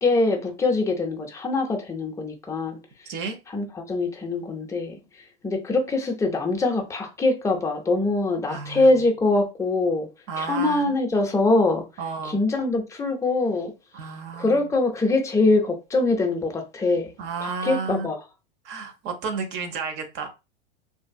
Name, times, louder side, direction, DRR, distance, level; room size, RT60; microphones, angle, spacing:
voice 1, 0.0-2.8 3.5-10.1 10.4-11.9 12.2-13.7 14.4-17.1 17.4-18.2, left 2 dB, 10° left, 0.5 m, -23 dB
voice 2, 3.1-3.4 8.4-8.9 10.3-10.9 12.0-12.4 13.9-14.7 17.2-18.1 18.6-20.3, right 5 dB, 40° right, 0.7 m, -32 dB
2.6 x 2.4 x 2.3 m
hypercardioid pair, 110°, 29 cm